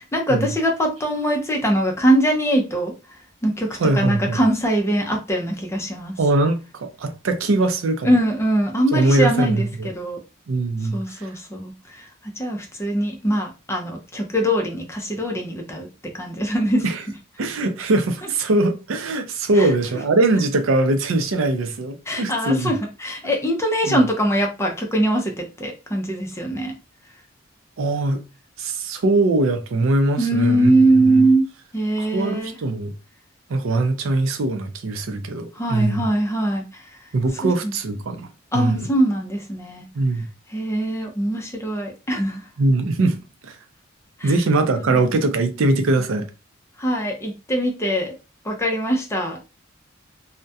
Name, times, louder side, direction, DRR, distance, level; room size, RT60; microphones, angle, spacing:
voice 1, 0.0-2.9 3.4-3.7 3.9-6.2 8.0-10.2 10.9-16.9 18.2-18.3 19.6-19.7 22.1-26.7 30.2-31.4 31.7-32.5 35.5-36.9 37.4-37.7 38.5-39.9 40.5-42.4 44.2-44.3 46.8-48.1 48.4-49.5, right 1 dB, 15° left, 0.5 m, -22 dB
voice 2, 3.8-4.4 6.2-8.1 8.9-9.9 10.5-11.3 16.8-16.9 17.4-22.7 23.8-24.0 27.8-28.2 28.6-30.8 31.1-31.3 32.0-32.9 33.5-36.0 37.1-38.3 38.5-38.9 40.0-40.3 42.6-43.2 43.4-43.6 44.2-46.3, right 2 dB, 75° right, 0.4 m, -21 dB
2.3 x 2.1 x 2.6 m
head